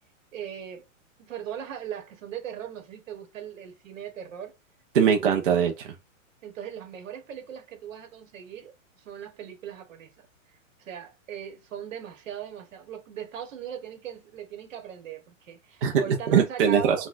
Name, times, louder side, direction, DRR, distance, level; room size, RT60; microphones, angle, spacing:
voice 1, 0.3-0.8 1.2-4.5 6.4-8.7 9.0-10.3 10.8-17.1, right 9 dB, 75° right, 1.2 m, -39 dB
voice 2, 4.9-5.9 15.8-15.9 16.3-17.1, right 7 dB, 45° right, 0.5 m, -22 dB
4.0 x 2.2 x 2.5 m
hypercardioid pair, 175°, 39 cm